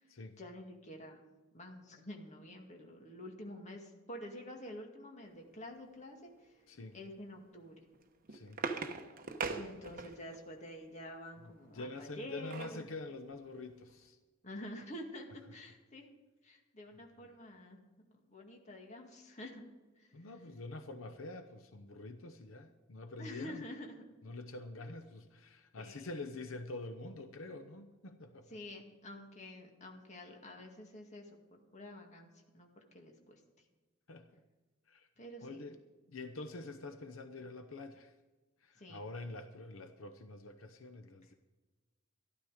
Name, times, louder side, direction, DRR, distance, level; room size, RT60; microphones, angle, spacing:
voice 1, 0.0-1.2 1.5-6.5 6.9-7.8 9.5-12.9 14.4-16.1 16.4-17.8 18.1-19.7 20.0-20.3 23.2-24.0 25.8-26.2 28.5-33.4 35.2-35.6 38.8-39.0, left 1 dB, 35° left, 2 dB, 2.1 m, -48 dB
voice 2, 6.7-7.0 8.3-8.6 11.4-14.2 17.2-17.3 20.1-23.7 24.2-28.6 34.1-34.4 34.9-35.1 35.4-35.8 36.1-38.1 38.6-41.3, left 2 dB, 85° left, 9 dB, 0.8 m, -46 dB
sound 1, 7.9-10.4 12.0-12.8 13.3-13.4 13.7-13.9, right 4 dB, 45° right, 1.0 m, -41 dB
13.0 x 12.5 x 5.0 m, 1.2 s
head